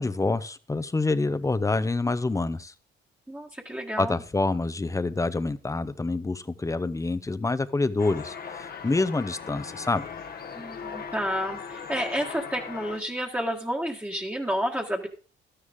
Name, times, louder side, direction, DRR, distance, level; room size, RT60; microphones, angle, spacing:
voice 1, 0.0-2.7 4.0-10.0, left 3 dB, 15° left, 14 dB, 0.8 m, -27 dB
voice 2, 3.3-4.2 10.5-15.1, equal, 10° right, -1 dB, 1.6 m, -30 dB
sound 1, 8.0-13.0, left 6 dB, 50° left, 1.3 m, -39 dB
12.5 x 10.0 x 3.7 m, 0.37 s
cardioid pair, 90°, 20 cm